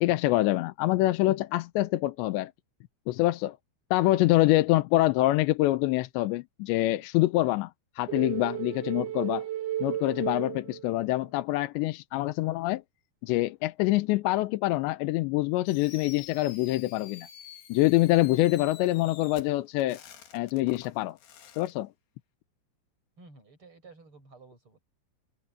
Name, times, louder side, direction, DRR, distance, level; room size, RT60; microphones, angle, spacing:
voice 1, 0.0-2.5 3.1-3.6 3.9-9.5 9.8-12.8 13.2-17.3 17.7-20.0 20.3-21.2 21.5-21.9, left 17 dB, 85° left, 3.0 m, -25 dB
voice 2, 4.7-5.1 23.2-24.8, right 3 dB, 30° right, 8.5 m, -53 dB
sound 1, 8.1-11.3, right 12 dB, 85° right, 4.6 m, -34 dB
Fireworks, 15.7-21.7, left 9 dB, 60° left, 3.5 m, -49 dB
omnidirectional pair, 5.1 m